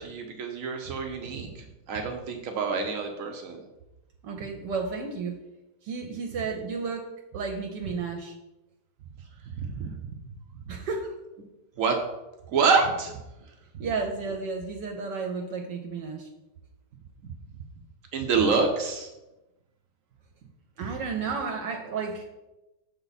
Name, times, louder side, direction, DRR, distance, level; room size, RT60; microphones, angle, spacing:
voice 1, 0.0-3.6 9.6-9.9 11.8-12.0 12.5-13.1 13.7-13.8 17.2-17.3 18.1-19.1, right 5 dB, 85° right, 4 dB, 0.7 m, -27 dB
voice 2, 4.2-5.4 5.8-8.4 10.7-11.1 13.8-16.3 20.8-22.2, right 4 dB, 70° right, 2 dB, 1.2 m, -32 dB
6.8 x 4.3 x 4.1 m, 0.98 s
omnidirectional pair, 2.1 m